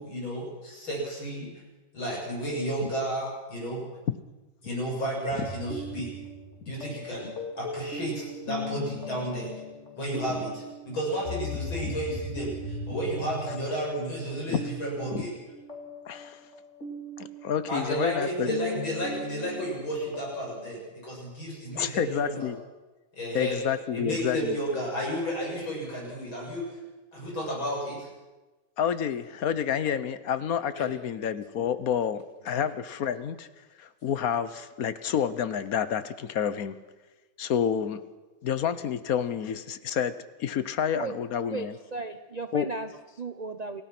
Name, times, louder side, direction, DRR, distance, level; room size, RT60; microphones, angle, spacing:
voice 1, 0.0-1.5 1.9-3.8 4.6-6.1 6.7-9.5 10.0-15.3 17.7-22.5 23.1-23.6 23.9-26.6 27.1-28.1 30.7-30.9 32.5-32.6, right 1 dB, 90° left, -3 dB, 8.3 m, -32 dB
sound 1, 5.3-20.8, left 2 dB, 35° left, 3.3 m, -38 dB
voice 2, 16.1-16.4 17.2-18.5 21.8-22.6 23.3-24.6 28.8-33.5 33.8-36.8 37.4-38.0 38.4-40.1 40.4-41.7 42.5-42.7, left 8 dB, 55° left, 13 dB, 1.2 m, -29 dB
voice 3, 41.5-43.8, right 3 dB, 70° right, 9 dB, 0.3 m, -36 dB
28.0 x 17.0 x 6.0 m, 1.2 s
omnidirectional pair, 2.1 m